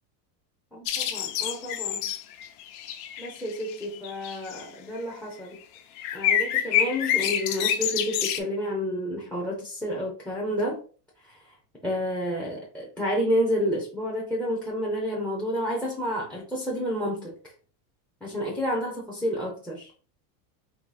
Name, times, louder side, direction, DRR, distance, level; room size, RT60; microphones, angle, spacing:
voice 1, 0.7-2.1 3.2-5.6 6.1-10.8 11.2-11.5 11.8-17.3 18.2-19.9, equal, 5° left, 0.4 m, -30 dB
sound 1, 0.9-4.6 6.0-8.4, left 10 dB, 65° left, 0.8 m, -27 dB
4.1 x 2.7 x 3.9 m
cardioid pair, 165°, 49 cm